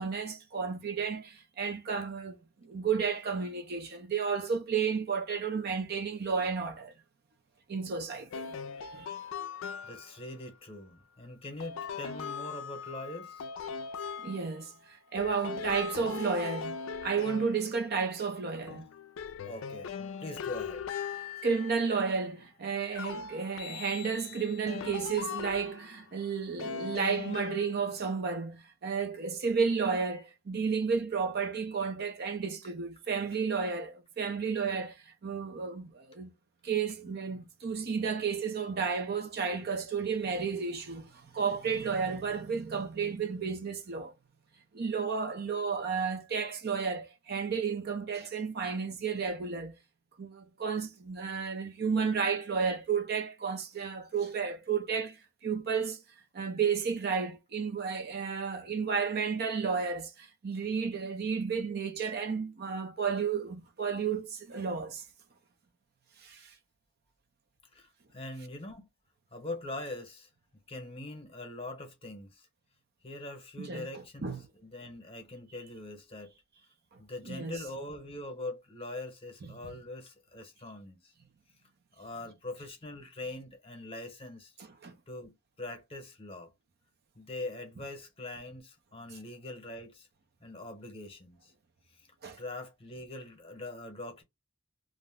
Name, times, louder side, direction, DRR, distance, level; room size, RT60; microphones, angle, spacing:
voice 1, 0.0-6.9 7.7-8.5 8.9-9.1 14.2-18.8 21.4-36.3 36.6-44.1 44.7-49.8 50.2-56.0 56.3-65.0 66.2-66.5 73.6-73.9 74.2-74.4 76.9-77.0 77.3-77.6 84.8-84.9 92.2-92.4, right 5 dB, 50° right, 0.5 m, -32 dB
sound 1, 8.3-10.3 11.6-14.8 15.2-18.2 18.7-22.2 22.9-26.0 26.6-28.0, left 6 dB, 75° left, 0.3 m, -40 dB
voice 2, 9.8-13.5 19.4-20.8 67.7-68.9 69.3-70.3 70.7-72.5 73.0-76.3 77.0-81.1 81.9-84.5 85.1-86.5 87.1-90.1 90.4-91.5 91.9-92.1 92.4-94.2, left 2 dB, 30° left, 0.9 m, -42 dB
2.5 x 2.1 x 3.5 m
head